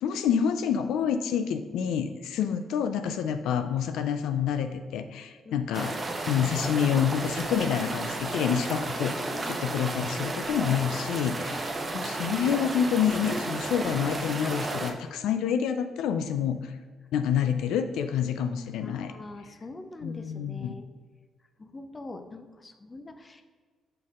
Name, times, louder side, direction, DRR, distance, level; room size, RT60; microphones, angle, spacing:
voice 1, 0.0-6.0 6.3-11.7 11.9-16.8 17.1-19.1 20.0-20.7, left 8 dB, 85° left, 9 dB, 0.3 m, -28 dB
sound 1, 5.7-14.9, right 2 dB, 30° right, 0.8 m, -33 dB
voice 2, 11.4-11.9 17.7-17.8 18.8-20.9 21.6-23.5, left 2 dB, 25° left, 7 dB, 0.6 m, -44 dB
6.6 x 4.2 x 3.6 m, 1.5 s
cardioid pair, 90°, 0 cm